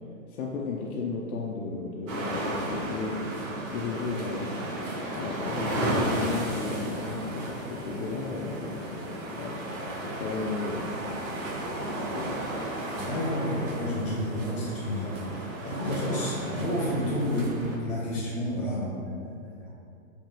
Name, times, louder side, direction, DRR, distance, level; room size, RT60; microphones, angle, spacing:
voice 1, 0.3-3.3 3.7-4.5 5.1-9.6 10.0-11.4 11.9-12.4, left 4 dB, 80° left, -3 dB, 0.6 m, -34 dB
sound 1, 2.1-17.8, right 1 dB, 60° right, 1.1 m, -34 dB
voice 2, 13.0-19.1 19.6-19.7, equal, 15° left, -8 dB, 1.0 m, -30 dB
4.5 x 2.9 x 2.9 m, 2.4 s
hypercardioid pair, 155°, 43 cm